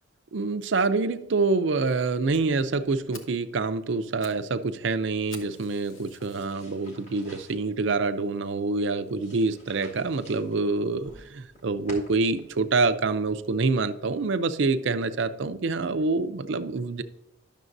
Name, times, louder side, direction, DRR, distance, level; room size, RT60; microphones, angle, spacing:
voice 1, 0.3-17.0, right 3 dB, 60° right, 11 dB, 0.5 m, -26 dB
Fire, 2.3-2.4 2.8-2.9 3.1-3.4 3.9-4.4 4.7-4.8 5.3-6.6 7.2-7.3 7.9-8.0 8.2-8.3 8.7-8.8, left 3 dB, 70° left, 1.1 m, -48 dB
sound 1, 6.2-13.6, equal, 35° left, 1.8 m, -51 dB
11.0 x 6.6 x 2.6 m, 0.87 s
head